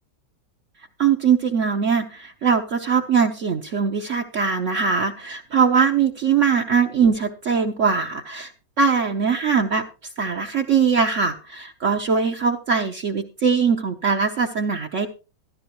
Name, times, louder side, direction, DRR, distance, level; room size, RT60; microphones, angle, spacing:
voice 1, 1.0-8.5 8.8-9.8 10.2-15.1, right 6 dB, 55° right, 4 dB, 1.0 m, -21 dB
14.0 x 13.0 x 3.0 m, 0.32 s
omnidirectional pair, 1.9 m